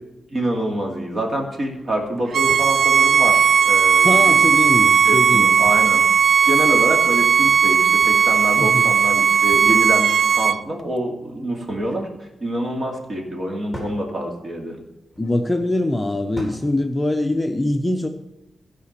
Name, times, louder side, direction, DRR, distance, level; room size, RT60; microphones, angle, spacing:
voice 1, 0.3-4.4 5.0-6.0 6.5-14.8, right 1 dB, 40° right, 1 dB, 2.5 m, -26 dB
Bowed string instrument, 2.3-10.6, right 7 dB, 70° right, 0.4 m, -16 dB
sound 1, 2.5-2.8 4.1-4.7 5.6-6.1 7.7-8.3 9.5-10.0 11.4-12.1 13.7-14.0 15.1-15.4 16.3-16.7, right 1 dB, 5° right, 3.3 m, -39 dB
voice 2, 4.0-5.5 8.6-8.9 15.2-18.1, left 1 dB, 15° left, 4 dB, 0.7 m, -23 dB
15.0 x 5.0 x 6.7 m, 0.97 s
wide cardioid pair, 125°, 0 cm